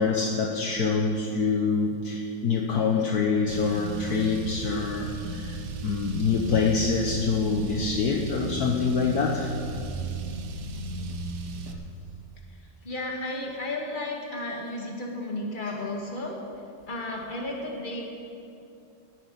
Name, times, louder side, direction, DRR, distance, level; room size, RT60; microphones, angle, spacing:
voice 1, 0.0-5.6 5.8-9.6 11.7-11.8, left 4 dB, 65° left, 0 dB, 1.4 m, -25 dB
Car, 3.5-11.7, right 3 dB, 70° right, 1.5 m, -35 dB
voice 2, 12.8-16.4 16.9-18.0, left 2 dB, 30° left, -1 dB, 2.0 m, -33 dB
11.0 x 9.1 x 9.0 m, 2.6 s
omnidirectional pair, 1.9 m